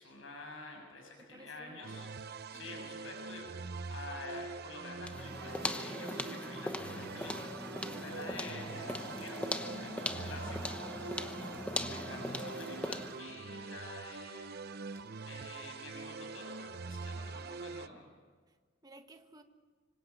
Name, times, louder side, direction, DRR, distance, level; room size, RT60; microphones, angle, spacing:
voice 1, 0.0-2.1 2.5-9.4 9.8-10.7 11.7-14.6 15.2-18.1, left 2 dB, 80° left, 1 dB, 6.4 m, -49 dB
voice 2, 1.2-2.1 2.5-3.0 18.5-18.6 18.8-19.4, right 1 dB, 20° right, 6 dB, 1.5 m, -57 dB
sound 1, 1.8-17.9, right 4 dB, 50° right, 0.7 m, -44 dB
sound 2, 5.0-13.2, left 1 dB, 5° left, 1.0 m, -40 dB
sound 3, 7.9-12.9, left 2 dB, 50° left, 4.0 m, -49 dB
25.5 x 25.5 x 5.6 m, 1.5 s
head